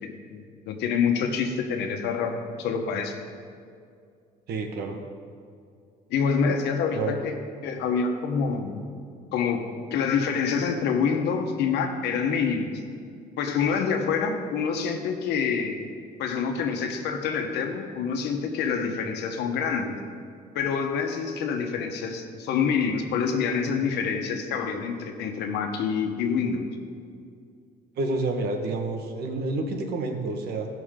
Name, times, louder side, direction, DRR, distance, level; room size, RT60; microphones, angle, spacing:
voice 1, 0.0-3.2 6.1-7.3 7.6-8.8 9.3-9.6 9.9-12.8 13.4-15.8 16.2-20.0 20.5-26.7, left 6 dB, 80° left, 4 dB, 1.2 m, -26 dB
voice 2, 4.5-5.0 6.9-7.2 28.0-30.7, right 3 dB, 70° right, 3 dB, 1.4 m, -29 dB
17.0 x 6.1 x 3.8 m, 2.3 s
cardioid pair, 110°, 17 cm